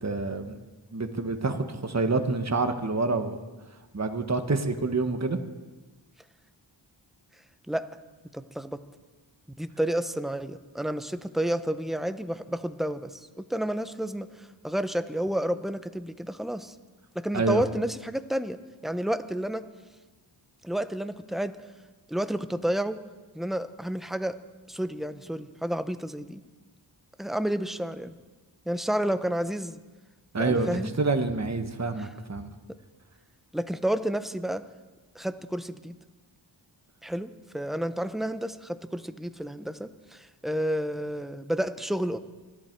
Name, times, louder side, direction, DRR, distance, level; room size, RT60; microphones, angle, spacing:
voice 1, 0.0-0.5 0.9-3.4 3.9-5.4 17.3-17.6 30.3-32.5, right 3 dB, 35° right, 6 dB, 1.4 m, -27 dB
voice 2, 8.3-8.8 9.6-16.7 17.1-18.6 18.8-19.7 20.6-21.5 22.1-23.0 23.3-24.3 24.7-26.4 27.2-28.2 28.7-29.8 30.4-30.9 32.0-32.1 33.5-34.6 35.1-36.0 37.0-42.2, right 1 dB, ahead, 10 dB, 0.9 m, -30 dB
25.5 x 11.5 x 4.7 m, 1.2 s
cardioid pair, 50°, 47 cm